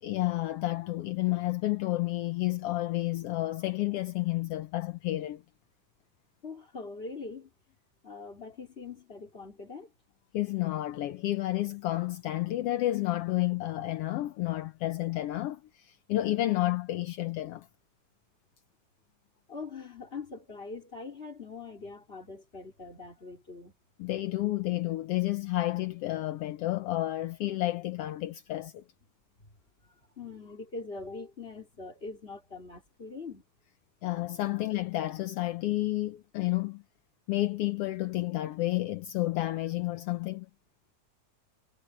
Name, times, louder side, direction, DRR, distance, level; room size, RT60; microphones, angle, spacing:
voice 1, 0.0-5.4 10.3-17.7 24.0-28.8 34.0-36.8 37.3-40.5, left 16 dB, 70° left, 1.4 m, -30 dB
voice 2, 6.4-7.5 8.0-9.9 19.5-23.7 29.8-33.4, left 4 dB, 20° left, 3.7 m, -43 dB
omnidirectional pair, 3.5 m